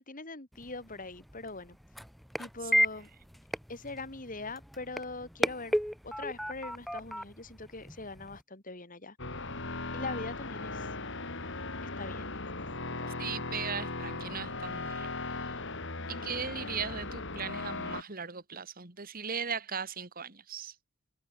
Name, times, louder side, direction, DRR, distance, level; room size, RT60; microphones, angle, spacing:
voice 1, 0.0-1.8 2.4-3.1 3.7-5.7 6.0-9.2 9.9-10.9 12.0-13.1 16.0-16.3, left 3 dB, 40° left, 3.4 m, -42 dB
sound 1, 0.5-8.4, equal, ahead, 1.4 m, -35 dB
sound 2, 9.2-18.0, left 3 dB, 60° left, 4.8 m, -38 dB
voice 2, 13.2-15.1 15.4-15.5 16.1-20.7, right 6 dB, 45° right, 2.3 m, -38 dB
head